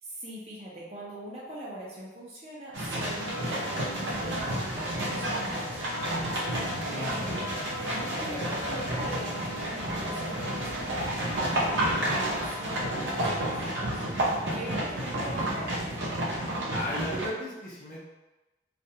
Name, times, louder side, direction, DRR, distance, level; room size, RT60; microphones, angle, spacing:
voice 1, 0.0-7.5 7.8-14.0 14.5-15.9, right 1 dB, 35° right, -6 dB, 0.6 m, -42 dB
sound 1, 2.7-17.3, right 1 dB, 85° right, 0.6 m, -31 dB
sound 2, 3.0-13.3, left 1 dB, 90° left, 0.4 m, -40 dB
voice 2, 6.6-7.1 14.2-14.7 16.7-18.0, left 1 dB, 45° left, -6 dB, 0.6 m, -37 dB
2.4 x 2.1 x 2.7 m, 1.1 s
head